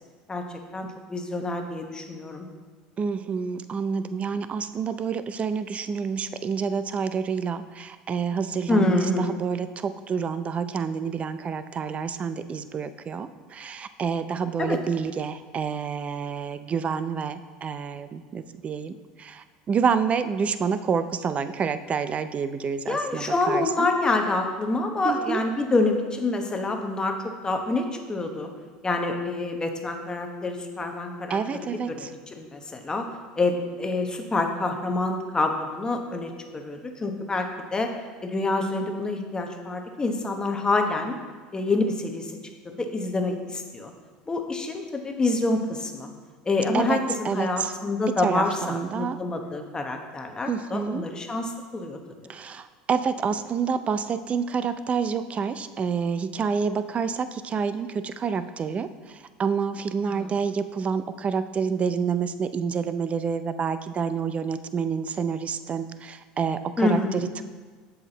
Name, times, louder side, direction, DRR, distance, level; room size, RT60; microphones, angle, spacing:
voice 1, 0.3-2.5 8.7-9.4 14.6-14.8 22.9-28.5 28.8-31.4 32.0-33.1 33.4-37.9 38.2-41.2 41.5-42.4 42.6-43.9 44.3-46.1 46.4-52.0 60.1-60.3 66.8-67.2, left 2 dB, 20° left, 4 dB, 0.9 m, -27 dB
voice 2, 3.0-23.9 25.0-25.4 31.3-32.1 46.7-47.0 47.2-47.7 48.2-49.2 50.5-51.1 52.3-67.4, right 6 dB, 30° right, 12 dB, 0.4 m, -28 dB
7.3 x 5.8 x 4.0 m, 1.5 s
hypercardioid pair, 90°, 4 cm